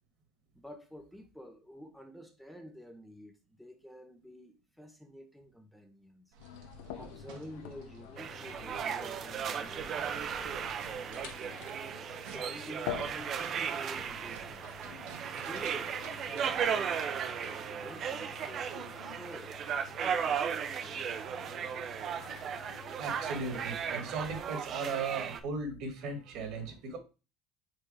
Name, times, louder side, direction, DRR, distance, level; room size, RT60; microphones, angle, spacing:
voice 1, 0.5-6.3 6.9-11.6 12.3-14.7 15.4-21.1, equal, ahead, 0.7 m, -50 dB
sound 1, 6.3-16.6, right 5 dB, 85° right, 1.5 m, -54 dB
sound 2, 6.4-24.4, left 9 dB, 85° left, 0.8 m, -48 dB
sound 3, 8.2-25.4, right 7 dB, 40° right, 0.6 m, -36 dB
voice 2, 23.0-27.0, right 4 dB, 55° right, 1.7 m, -37 dB
4.7 x 4.3 x 4.8 m
cardioid pair, 150°, 0 cm